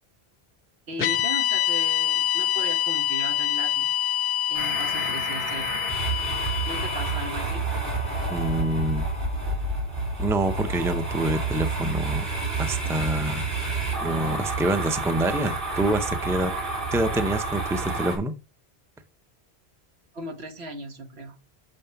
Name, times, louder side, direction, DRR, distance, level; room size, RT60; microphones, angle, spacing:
voice 1, 0.9-3.9 4.2-5.8 6.7-7.6 20.1-21.4, right 2 dB, 85° right, 1.6 m, -37 dB
sound 1, 1.0-9.3, left 12 dB, 70° left, 0.7 m, -27 dB
sound 2, 4.5-18.2, right 3 dB, 55° right, 3.4 m, -29 dB
voice 2, 8.3-9.1 10.2-12.3 12.6-13.7 14.0-16.5 16.9-18.4, right 1 dB, 5° right, 0.5 m, -26 dB
6.4 x 5.4 x 5.7 m
omnidirectional pair, 1.1 m